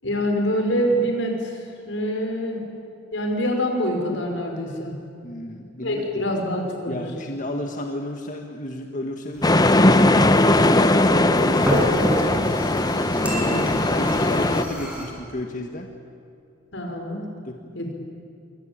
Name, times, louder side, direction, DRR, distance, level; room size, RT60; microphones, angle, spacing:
voice 1, 0.0-2.6 3.1-5.0 5.8-7.0 11.0-11.3 13.3-13.8 14.4-14.5 16.7-17.3 17.7-17.9, equal, 85° left, 2 dB, 5.5 m, -26 dB
voice 2, 5.2-6.1 6.9-9.9 10.6-12.1 13.9-15.9 17.4-17.5, left 1 dB, 45° left, 3 dB, 1.8 m, -32 dB
sound 1, 9.3-15.0, equal, 10° right, 6.4 m, -30 dB
sound 2, 9.4-14.6, left 1 dB, 20° left, 1.1 m, -19 dB
26.5 x 24.0 x 8.9 m, 2.4 s
head